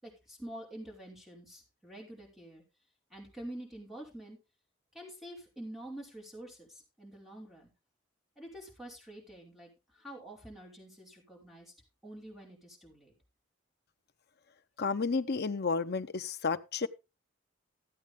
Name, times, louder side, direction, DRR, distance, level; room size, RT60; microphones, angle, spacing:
voice 1, 0.0-2.6 3.1-4.4 4.9-7.7 8.4-11.7 12.0-13.1, right 1 dB, ahead, 5.1 m, -47 dB
voice 2, 14.8-16.9, left 4 dB, 55° left, 0.8 m, -31 dB
14.0 x 8.5 x 3.6 m
head